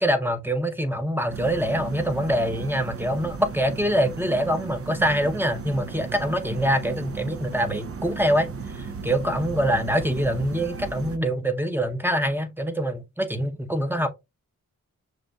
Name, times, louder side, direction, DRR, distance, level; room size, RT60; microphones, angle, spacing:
voice 1, 0.0-14.1, equal, 5° right, 0.8 m, -25 dB
sound 1, 1.3-11.2, right 5 dB, 40° right, 0.5 m, -35 dB
6.5 x 2.4 x 2.3 m
cardioid pair, 45°, 35 cm